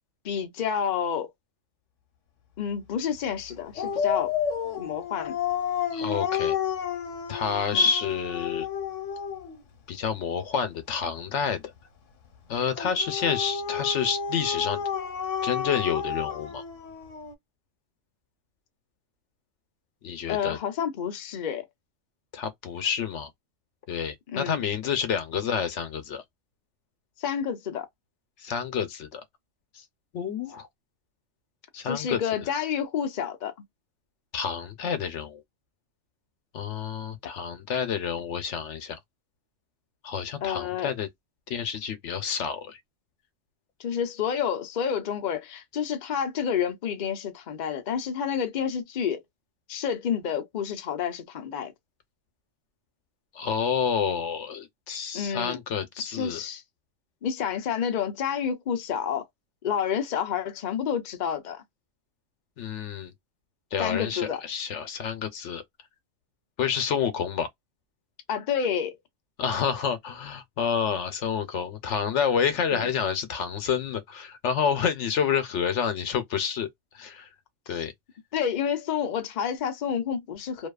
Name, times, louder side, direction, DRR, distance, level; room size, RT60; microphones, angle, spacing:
voice 1, 0.2-1.3 2.6-4.3 4.8-5.4 7.7-7.9 20.3-21.6 24.3-24.6 27.2-27.9 31.8-33.5 40.4-40.9 43.8-49.2 49.7-51.7 55.1-55.6 56.1-56.6 57.2-59.3 59.6-61.6 63.8-64.4 68.3-69.0 72.7-72.9 77.7-77.8 78.3-80.7, left 8 dB, 50° left, 0.6 m, -29 dB
Dog, 3.8-9.6 12.8-17.3, left 8 dB, 90° left, 1.1 m, -31 dB
voice 2, 5.9-6.6 7.3-8.7 9.9-11.6 12.5-14.8 15.4-16.6 20.0-20.6 22.3-23.3 23.9-26.2 28.4-29.2 30.1-30.7 31.7-32.2 34.3-35.4 36.5-39.0 40.0-41.1 41.5-42.8 53.3-56.4 62.6-63.1 63.7-65.6 66.6-67.5 69.4-76.7 76.9-77.3 77.7-77.9, left 7 dB, 75° left, 0.9 m, -28 dB
2.7 x 2.3 x 2.3 m
omnidirectional pair, 1.3 m